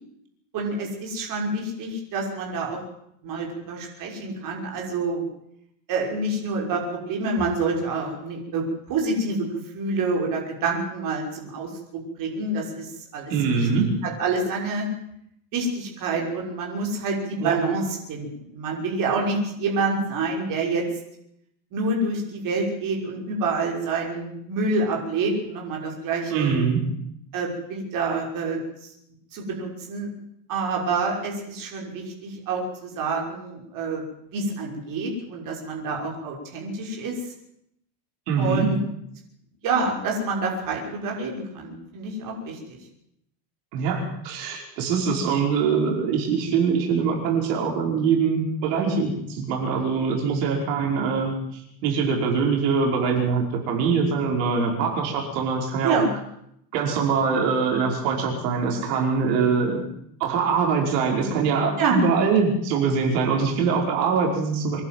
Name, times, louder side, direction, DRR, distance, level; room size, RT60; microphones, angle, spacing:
voice 1, 0.5-2.8 3.2-5.3 5.9-13.6 14.0-14.9 15.5-20.8 21.7-26.6 27.3-28.9 29.3-30.1 30.5-34.0 34.3-37.3 38.4-38.8 39.6-42.8 55.8-56.1 61.8-62.0, right 3 dB, 40° right, 0 dB, 6.0 m, -27 dB
voice 2, 13.3-13.8 17.4-17.6 26.3-26.8 38.3-38.7 43.7-56.0 56.7-59.8 60.2-64.8, right 5 dB, 75° right, 0 dB, 5.5 m, -23 dB
25.0 x 11.5 x 9.4 m, 0.75 s
cardioid pair, 155°, 48 cm